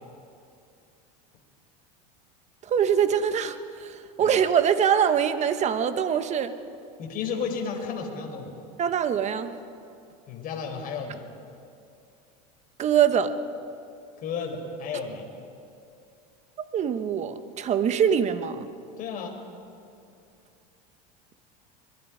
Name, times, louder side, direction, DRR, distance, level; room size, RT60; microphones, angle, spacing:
voice 1, 2.7-6.5 8.8-9.6 12.8-13.3 16.7-18.7, right 8 dB, 35° right, 10 dB, 1.3 m, -23 dB
voice 2, 7.0-8.5 10.3-11.2 14.2-15.3 19.0-19.4, left 5 dB, 45° left, 2 dB, 4.5 m, -33 dB
26.0 x 21.0 x 5.1 m, 2.6 s
supercardioid pair, 115°, 20 cm